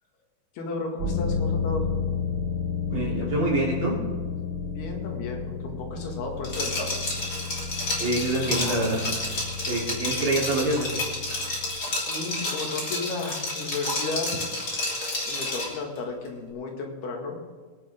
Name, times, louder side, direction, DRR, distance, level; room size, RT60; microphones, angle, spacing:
voice 1, 0.5-1.9 4.7-7.0 11.9-14.4 15.3-17.4, left 3 dB, 75° left, 1 dB, 3.8 m, -33 dB
sound 1, 1.0-11.7, left 5 dB, 70° right, 4.1 m, -32 dB
voice 2, 2.9-3.9 8.0-9.1 9.7-11.1, right 2 dB, 35° right, -5 dB, 3.8 m, -26 dB
Liquid, 6.4-15.8, left 2 dB, 25° left, 3.2 m, -30 dB
24.0 x 9.9 x 3.7 m, 1.5 s
omnidirectional pair, 4.6 m